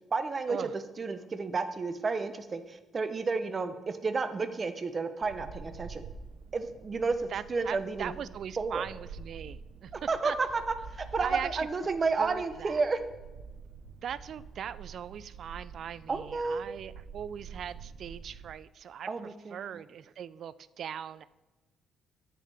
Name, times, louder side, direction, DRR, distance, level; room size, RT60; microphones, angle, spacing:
voice 1, 0.1-6.0 6.5-8.1 8.6-8.8 9.9-13.0 16.1-16.7 19.1-19.6, right 4 dB, 35° right, 9 dB, 0.7 m, -31 dB
sound 1, 5.2-18.5, right 5 dB, 85° right, 0.7 m, -47 dB
voice 2, 7.3-9.9 10.2-10.4 11.2-11.7 12.2-12.8 14.0-19.1 19.5-21.2, right 8 dB, 65° right, 17 dB, 0.3 m, -40 dB
13.5 x 5.0 x 3.4 m, 1.1 s
cardioid pair, 90°, 0 cm